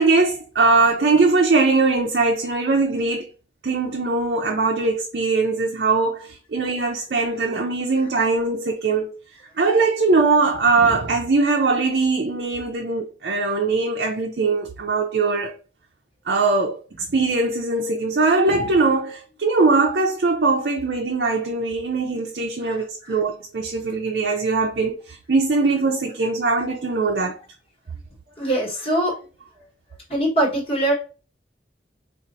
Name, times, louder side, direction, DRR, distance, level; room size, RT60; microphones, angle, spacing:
voice 1, 0.0-3.3 3.6-15.5 16.3-27.4, right 3 dB, 65° right, 0.5 m, -21 dB
voice 2, 28.4-29.2 30.1-30.9, right 1 dB, 30° left, 1.4 m, -21 dB
4.2 x 2.5 x 2.6 m
head